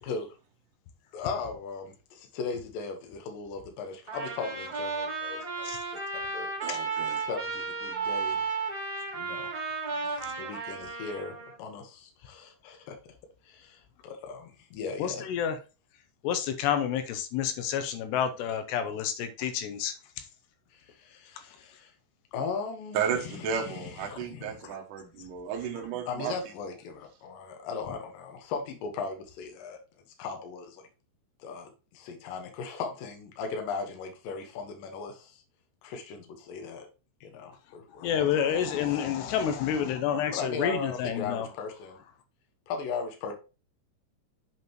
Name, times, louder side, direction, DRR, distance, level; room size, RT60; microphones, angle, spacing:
voice 1, 0.0-0.3 1.1-6.7 7.2-8.5 9.1-9.5 10.0-13.0 13.4-15.3 20.7-21.9 22.3-24.6 26.1-29.8 30.2-30.9 31.4-35.4 35.8-36.9 37.2-39.1 40.3-42.0 42.7-43.3, left 5 dB, 65° left, 2.4 m, -38 dB
Trumpet, 4.1-11.5, right 4 dB, 15° right, 1.4 m, -34 dB
voice 2, 6.6-7.3 22.9-26.3, right 7 dB, 75° right, 1.9 m, -33 dB
voice 3, 15.0-15.6 16.2-19.9 24.1-24.2 38.0-41.5, left 9 dB, 80° left, 2.6 m, -29 dB
8.0 x 5.4 x 3.0 m
omnidirectional pair, 5.2 m